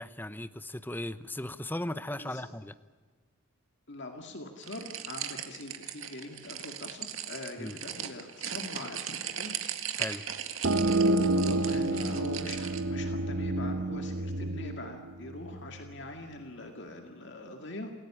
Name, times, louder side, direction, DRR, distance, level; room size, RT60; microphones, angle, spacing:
voice 1, 0.0-2.7 7.6-7.8 10.0-10.2, left 1 dB, 10° left, 13 dB, 0.8 m, -37 dB
voice 2, 2.1-2.5 3.9-9.6 11.2-17.9, left 2 dB, 55° left, 4 dB, 2.1 m, -43 dB
sound 1, 4.6-12.8, right 9 dB, 75° right, 2.1 m, -38 dB
sound 2, 10.6-16.0, right 2 dB, 55° right, 1.0 m, -29 dB
28.0 x 16.5 x 8.7 m, 1.5 s
head